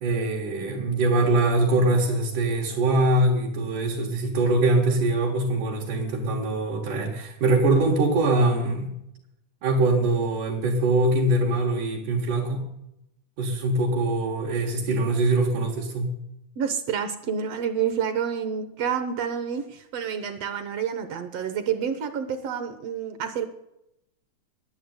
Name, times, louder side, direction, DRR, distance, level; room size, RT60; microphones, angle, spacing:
voice 1, 0.0-8.9 9.6-12.6 13.4-16.1, right 2 dB, 85° right, -2 dB, 3.2 m, -23 dB
voice 2, 16.6-23.5, right 7 dB, 70° right, 9 dB, 1.7 m, -28 dB
10.5 x 9.9 x 9.4 m, 0.84 s
omnidirectional pair, 3.5 m